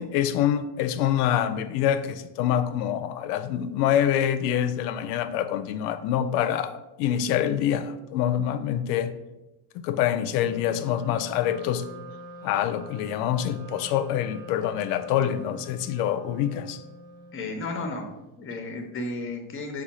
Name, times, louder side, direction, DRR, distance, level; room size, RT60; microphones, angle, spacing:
voice 1, 0.0-9.1 9.7-11.8 12.4-16.8, left 10 dB, 90° left, 11 dB, 0.5 m, -26 dB
Wind instrument woodwind instrument, 10.3-18.1, equal, 20° right, 1.0 m, -44 dB
voice 2, 17.3-19.8, left 2 dB, 25° left, 5 dB, 0.7 m, -33 dB
4.7 x 2.3 x 4.1 m, 0.96 s
supercardioid pair, 115°, 46 cm